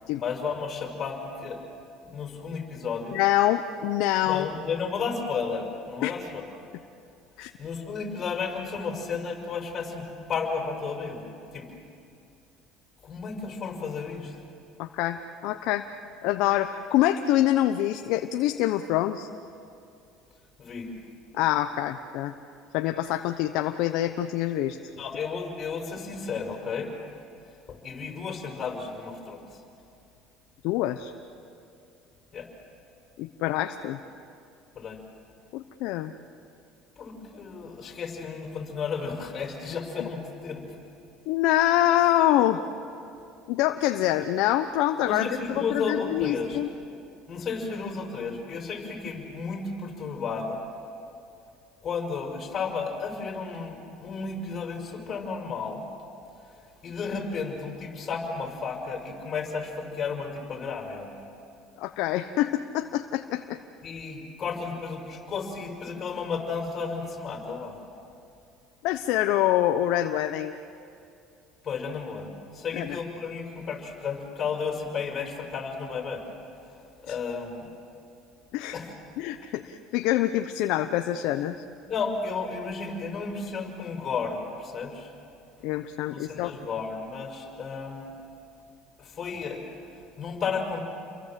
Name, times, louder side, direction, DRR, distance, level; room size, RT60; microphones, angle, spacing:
voice 1, 0.2-1.6 2.0-3.2 4.2-6.5 7.6-11.3 11.5-11.7 13.0-14.3 20.6-20.9 24.9-26.9 27.7-29.6 32.3-32.5 34.7-35.0 37.0-40.7 45.0-46.6 47.3-50.6 51.8-55.8 56.8-61.1 63.8-67.8 71.6-76.3 77.0-77.7 78.7-78.9 81.8-85.1 86.1-88.1 89.0-89.6 90.2-90.8, left 5 dB, 35° left, 1 dB, 5.9 m, -33 dB
voice 2, 3.1-4.5 6.0-6.1 7.4-7.5 14.8-15.9 16.2-19.3 21.3-22.3 22.7-24.8 30.6-31.1 33.2-34.0 35.5-36.1 40.0-40.1 41.3-42.6 43.5-46.7 61.8-63.6 68.8-70.6 72.7-73.0 77.1-77.2 78.5-78.8 79.2-81.5 85.6-86.5, left 13 dB, 70° left, 7 dB, 0.9 m, -25 dB
29.5 x 23.0 x 7.6 m, 2.6 s
supercardioid pair, 105°, 0 cm